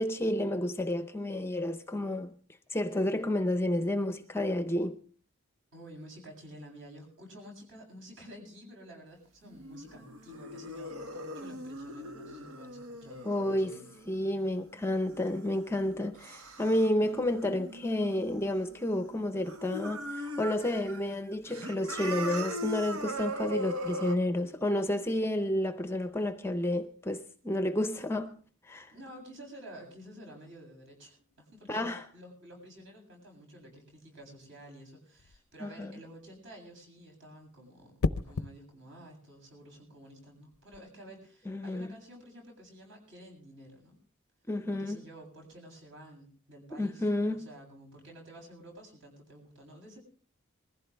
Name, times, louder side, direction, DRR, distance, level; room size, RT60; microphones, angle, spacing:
voice 1, 0.0-2.4 2.7-5.0 13.2-13.8 14.1-28.9 31.7-32.0 35.6-36.0 41.5-41.9 44.5-45.0 46.7-47.5, left 1 dB, 10° left, 0.6 m, -31 dB
voice 2, 5.7-13.9 28.9-44.0 44.8-50.0, right 1 dB, 60° right, 7.9 m, -51 dB
sound 1, 9.4-19.1 19.3-21.0 21.3-24.2, equal, 80° right, 1.9 m, -40 dB
sound 2, 35.2-35.5 38.0-38.5 40.5-40.8, left 3 dB, 90° left, 0.6 m, -32 dB
21.5 x 15.0 x 3.4 m
head